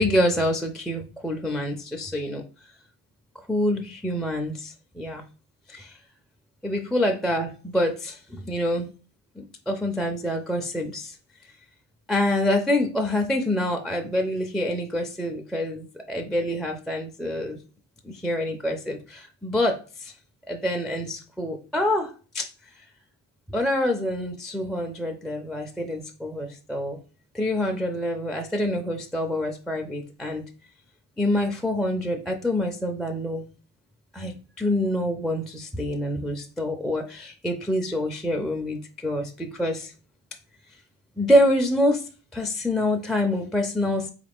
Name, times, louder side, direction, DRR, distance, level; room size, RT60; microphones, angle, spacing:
voice 1, 0.0-2.4 3.5-5.2 5.7-6.0 6.6-8.9 9.4-11.2 12.1-17.6 18.0-20.1 20.5-22.5 23.5-27.0 27.3-30.4 31.2-33.4 34.1-39.9 41.2-44.1, left 1 dB, ahead, 3 dB, 0.3 m, -26 dB
3.6 x 2.4 x 3.4 m, 0.35 s
cardioid pair, 80°, 43 cm